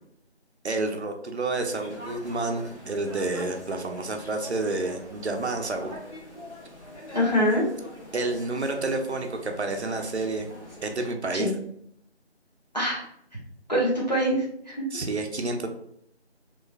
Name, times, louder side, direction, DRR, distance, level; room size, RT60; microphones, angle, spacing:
voice 1, 0.6-5.9 8.1-10.5 10.8-11.5 14.9-15.7, right 2 dB, 70° right, 4 dB, 0.5 m, -29 dB
sound 1, 1.5-11.1, left 1 dB, 85° left, 1.3 m, -44 dB
voice 2, 7.1-7.6 11.3-11.5 12.7-13.0 13.7-14.8, equal, 40° left, -5 dB, 0.8 m, -24 dB
3.0 x 2.2 x 2.2 m, 0.71 s
figure-of-eight pair, 170°, 34 cm